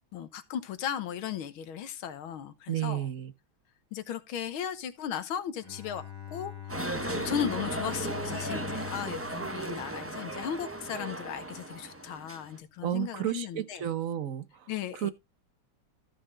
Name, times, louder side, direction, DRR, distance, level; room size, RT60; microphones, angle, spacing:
voice 1, 0.1-3.1 3.9-6.0 6.3-13.8 14.7-15.1, left 9 dB, 85° left, 1.9 m, -36 dB
voice 2, 2.7-3.3 12.8-15.1, right 11 dB, 55° right, 1.0 m, -32 dB
Bowed string instrument, 5.6-10.6, left 11 dB, 10° left, 1.6 m, -44 dB
sound 1, 6.7-12.6, right 1 dB, 20° right, 0.3 m, -36 dB
14.0 x 5.9 x 3.8 m
omnidirectional pair, 2.2 m